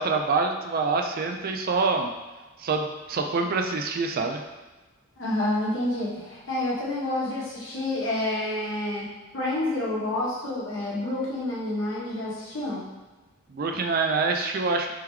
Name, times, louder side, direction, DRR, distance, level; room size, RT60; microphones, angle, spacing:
voice 1, 0.0-2.1 2.6-4.4 13.5-14.9, right 4 dB, 45° right, 4 dB, 0.4 m, -26 dB
voice 2, 5.2-9.1 9.3-12.8, left 1 dB, 70° left, -6 dB, 1.2 m, -28 dB
3.6 x 3.4 x 3.1 m, 1.2 s
head